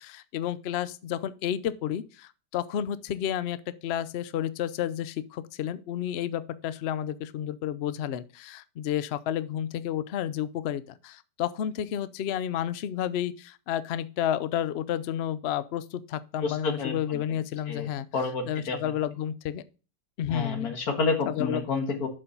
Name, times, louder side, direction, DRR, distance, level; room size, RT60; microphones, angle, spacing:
voice 1, 0.0-3.6 3.8-18.1 18.5-19.6 20.2-20.7 21.3-21.7, left 10 dB, 90° left, 0.5 m, -31 dB
voice 2, 16.4-17.2 17.7-17.9 18.1-18.9 20.3-22.1, left 4 dB, 60° left, 2.0 m, -29 dB
7.0 x 5.5 x 5.3 m
omnidirectional pair, 1.8 m